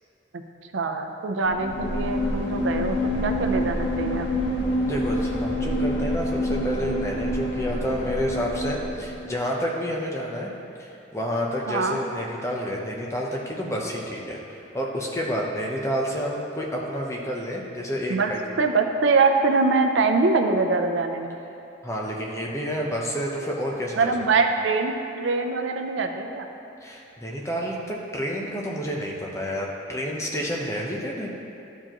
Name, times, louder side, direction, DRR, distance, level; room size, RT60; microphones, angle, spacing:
voice 1, 0.7-3.0 3.2-4.4 11.7-12.0 18.1-21.4 24.0-26.5, right 3 dB, 80° right, 5 dB, 0.5 m, -23 dB
sound 1, 1.4-9.3, left 1 dB, 70° left, 0.9 m, -27 dB
voice 2, 4.8-10.5 10.8-18.4 21.8-24.1 26.8-31.3, equal, 15° left, -2 dB, 0.7 m, -29 dB
12.0 x 4.5 x 3.0 m, 2.7 s
head